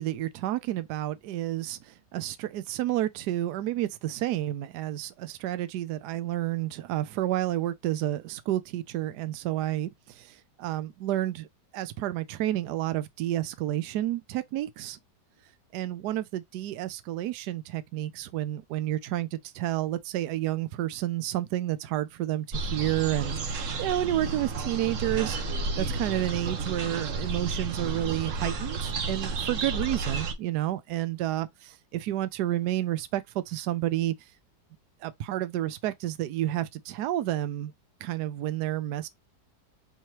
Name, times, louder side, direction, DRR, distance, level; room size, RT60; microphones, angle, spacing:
voice 1, 0.0-11.5 11.7-15.0 15.7-25.4 25.8-34.1 35.0-37.7 38.0-39.1, right 14 dB, 75° right, 1.1 m, -30 dB
sound 1, 22.5-30.3, right 4 dB, 55° right, 1.0 m, -32 dB
5.5 x 3.1 x 2.9 m
omnidirectional pair, 1.9 m